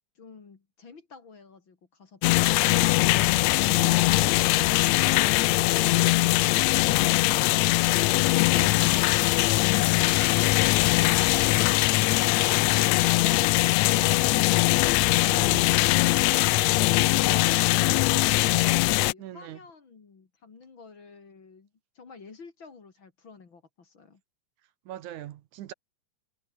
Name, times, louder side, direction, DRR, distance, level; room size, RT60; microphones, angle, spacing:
voice 1, 0.2-3.2 16.8-21.7 21.9-24.2, left 4 dB, 40° left, 3.1 m, -47 dB
sound 1, 2.2-19.1, left 20 dB, 85° left, 1.6 m, -21 dB
voice 2, 8.3-8.7 15.2-15.6 19.2-19.6 24.9-25.7, right 12 dB, 75° right, 2.4 m, -41 dB
omnidirectional pair, 3.6 m